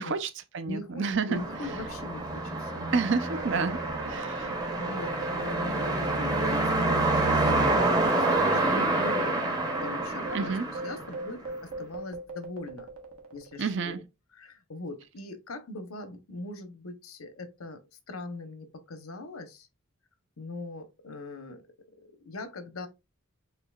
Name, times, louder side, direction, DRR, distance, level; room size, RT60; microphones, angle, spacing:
voice 1, 0.0-1.4 2.9-3.8 4.1-4.5 10.3-10.7 13.6-14.0, right 4 dB, 55° right, 0.5 m, -29 dB
voice 2, 0.7-3.0 4.4-7.7 8.1-12.9 13.3-14.0 14.3-17.8 18.1-19.7 20.4-21.7 22.2-22.9, left 2 dB, 80° left, 0.9 m, -40 dB
sound 1, 1.3-11.6, right 2 dB, 20° right, 0.8 m, -28 dB
sound 2, 3.1-7.9 8.2-8.3 8.9-13.7, right 3 dB, 80° right, 1.2 m, -41 dB
6.8 x 2.8 x 2.3 m
head